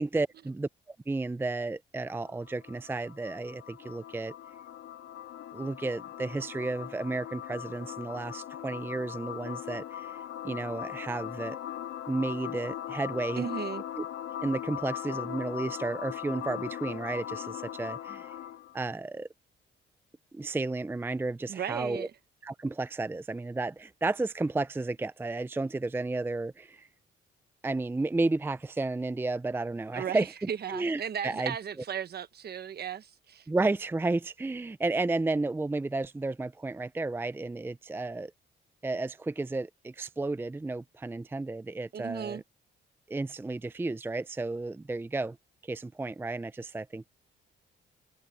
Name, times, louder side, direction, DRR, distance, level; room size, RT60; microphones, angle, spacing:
voice 1, 0.0-4.3 5.5-10.1 10.4-11.6 12.1-13.5 14.0-14.1 14.4-18.3 18.7-19.3 20.3-22.1 22.4-26.9 27.6-30.3 30.7-31.5 33.5-38.3 38.8-42.4 43.1-45.4 45.7-47.1, right 2 dB, 10° right, 0.5 m, -32 dB
sound 1, 2.1-18.7, left 11 dB, 90° left, 2.1 m, -40 dB
voice 2, 13.4-13.8 21.5-22.1 29.9-33.5 41.9-42.4, right 8 dB, 55° right, 1.2 m, -36 dB
cardioid pair, 90°, 20 cm